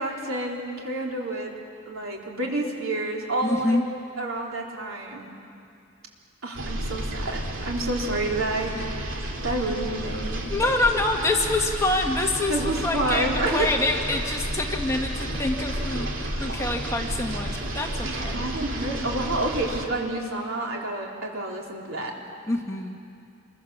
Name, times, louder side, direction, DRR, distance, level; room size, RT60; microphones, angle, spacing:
voice 1, 0.0-1.5 1.9-3.8 4.2-5.3 6.4-10.5 12.5-13.7 18.0-22.1, right 2 dB, 85° right, -1 dB, 3.9 m, -29 dB
voice 2, 3.4-3.8 10.5-18.5 22.5-23.0, left 2 dB, 15° left, 1 dB, 1.7 m, -26 dB
sound 1, 6.5-19.8, right 1 dB, 70° right, 2.6 m, -31 dB
28.5 x 23.0 x 7.3 m, 2.5 s
head